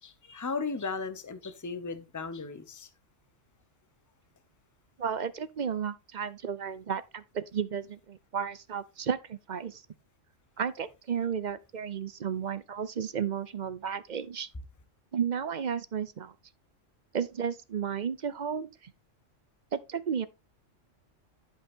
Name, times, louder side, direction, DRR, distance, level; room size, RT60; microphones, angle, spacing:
voice 1, 0.0-2.9, left 4 dB, 15° left, 0.9 m, -36 dB
voice 2, 5.0-9.8 10.6-14.5 15.1-16.3 17.1-18.9 19.7-20.3, right 7 dB, 45° right, 0.7 m, -33 dB
11.5 x 5.3 x 3.6 m
omnidirectional pair, 1.3 m